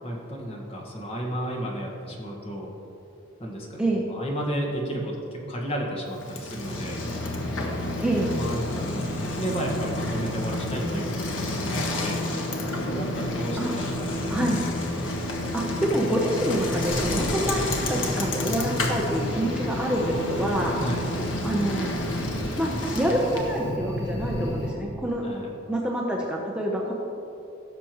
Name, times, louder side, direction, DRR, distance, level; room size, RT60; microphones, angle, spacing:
voice 1, 0.0-2.7 3.4-3.8 4.1-7.0 8.3-12.2 12.7-14.3 20.8-21.0 25.2-25.5, right 1 dB, 30° left, -2 dB, 1.6 m, -32 dB
Bicycle, 6.1-23.7, left 1 dB, 85° left, 1.3 m, -29 dB
voice 2, 8.0-8.3 13.6-13.7 14.3-14.6 15.5-17.6 17.9-20.8 21.4-22.0 22.6-25.2 25.7-26.9, right 1 dB, 5° right, -3 dB, 0.8 m, -27 dB
sound 1, 17.5-24.7, equal, 60° left, 1.5 m, -35 dB
16.5 x 6.9 x 3.1 m, 2.8 s
head